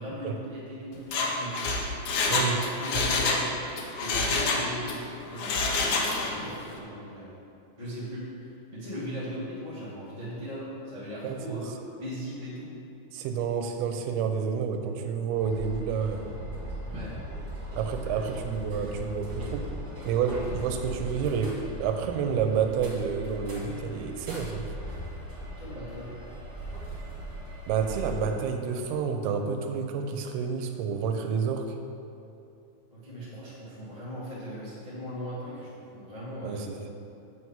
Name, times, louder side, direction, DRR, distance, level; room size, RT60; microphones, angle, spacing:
voice 1, 0.0-1.8 2.3-3.4 3.8-4.9 5.3-7.3 7.8-11.7 12.0-12.7 16.8-17.2 18.0-18.2 25.6-26.1 32.9-36.6, equal, 30° left, -9 dB, 0.6 m, -38 dB
Mechanisms, 1.0-3.5 3.8-5.0 5.3-6.4 6.7-6.8, left 3 dB, 85° left, 1.6 m, -27 dB
voice 2, 2.2-2.6 11.2-11.7 13.1-16.4 17.8-19.7 20.1-24.7 27.7-31.8 36.4-36.9, right 6 dB, 85° right, 5 dB, 2.6 m, -29 dB
sound 1, 15.3-28.3, right 1 dB, 40° right, 2.3 m, -39 dB
8.1 x 4.7 x 7.3 m, 2.7 s
omnidirectional pair, 4.5 m